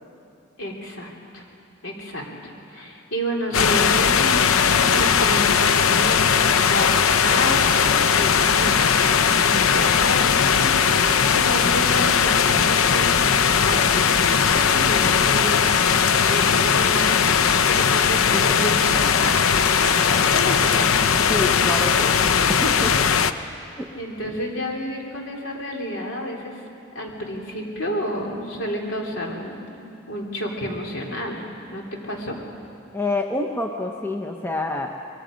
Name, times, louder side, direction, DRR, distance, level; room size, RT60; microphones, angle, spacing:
voice 1, 0.6-1.4 1.8-13.3 13.6-15.7 16.2-20.9 23.9-26.5 26.9-29.7 30.1-31.4 31.7-32.3, equal, 65° left, -1 dB, 3.3 m, -30 dB
sound 1, 3.5-23.3, left 7 dB, 85° left, 0.7 m, -19 dB
voice 2, 21.2-23.1 23.8-23.9 32.9-34.9, left 2 dB, 10° left, 2 dB, 0.8 m, -28 dB
24.5 x 21.5 x 5.2 m, 2.6 s
head